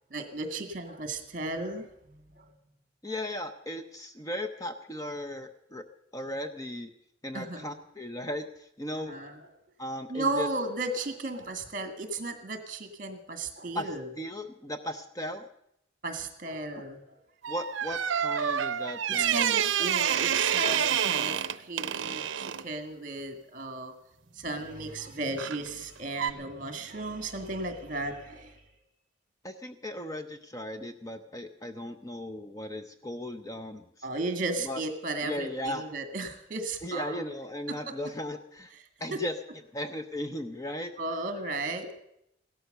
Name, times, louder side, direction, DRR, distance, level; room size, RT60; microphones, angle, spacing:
voice 1, 0.1-2.5 7.3-7.7 8.9-9.4 10.1-14.1 16.0-17.0 19.1-23.9 24.3-28.6 34.0-37.2 37.7-37.9 39.1-39.2 41.0-42.0, right 2 dB, 45° right, 8 dB, 2.0 m, -35 dB
voice 2, 3.0-5.8 6.1-6.9 7.2-9.1 9.8-10.5 13.7-15.5 17.5-19.9 29.4-34.1 34.6-34.8 35.2-35.9 36.8-38.7 39.0-39.3 39.7-40.9, left 1 dB, 15° left, 9 dB, 0.7 m, -37 dB
sound 1, 17.4-22.7 25.4-25.7 26.2-26.3, right 9 dB, 75° right, 0.6 m, -28 dB
16.5 x 13.0 x 6.6 m, 0.78 s
head